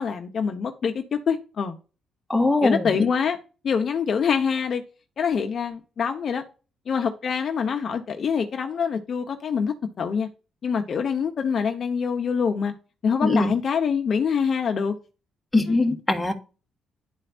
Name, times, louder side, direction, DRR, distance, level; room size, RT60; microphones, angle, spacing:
voice 1, 0.0-1.8 2.6-3.4 3.6-4.8 5.2-6.4 6.9-10.3 10.6-12.7 13.0-14.9 15.7-15.8, left 6 dB, 50° left, 1.0 m, -25 dB
voice 2, 2.3-2.9 13.2-13.5 15.5-16.3, left 2 dB, 10° left, 1.6 m, -21 dB
11.5 x 4.4 x 2.5 m
cardioid pair, 90°, 0 cm